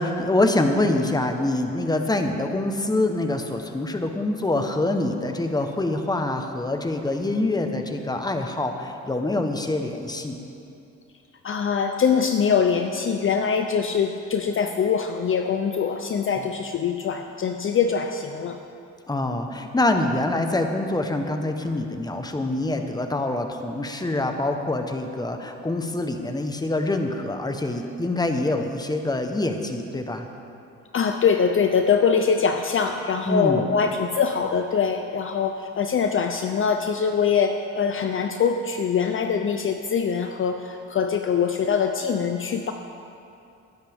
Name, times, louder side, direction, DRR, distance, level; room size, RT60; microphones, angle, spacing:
voice 1, 0.0-10.4 19.1-30.3 33.3-33.7, left 2 dB, 15° left, 5 dB, 1.1 m, -25 dB
voice 2, 11.4-18.6 30.9-42.7, left 6 dB, 45° left, 6 dB, 0.7 m, -23 dB
20.0 x 10.5 x 3.6 m, 2.7 s
cardioid pair, 90°, 30 cm